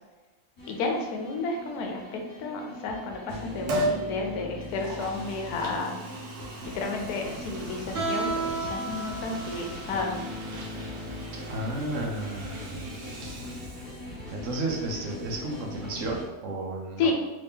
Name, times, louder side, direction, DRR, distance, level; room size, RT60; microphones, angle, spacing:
sound 1, 0.6-16.3, left 1 dB, 45° left, 1.0 m, -40 dB
voice 1, 0.7-6.0 6.7-10.2 17.0-17.1, left 3 dB, 90° left, 2 dB, 1.1 m, -31 dB
Liquid, 3.7-4.0 4.6-14.2 14.6-14.7, right 1 dB, 85° right, 1.3 m, -37 dB
Guitar, 7.9-13.6, right 3 dB, 35° right, 1.0 m, -35 dB
voice 2, 11.5-12.8 14.3-17.1, right 2 dB, 60° right, 0 dB, 1.0 m, -32 dB
3.2 x 2.8 x 3.5 m, 1.1 s
omnidirectional pair, 1.6 m